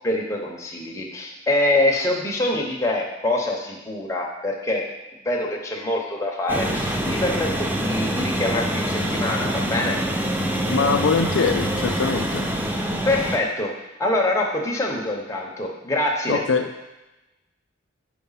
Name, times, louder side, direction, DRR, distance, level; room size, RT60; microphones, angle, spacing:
voice 1, 0.0-4.8 5.2-10.0 13.0-16.4, left 1 dB, 15° left, -1 dB, 0.8 m, -25 dB
sound 1, 6.5-13.4, right 1 dB, 10° right, 0.4 m, -25 dB
voice 2, 10.7-12.5 16.3-16.7, left 4 dB, 65° left, 5 dB, 0.4 m, -22 dB
4.9 x 4.4 x 5.6 m, 1.0 s
head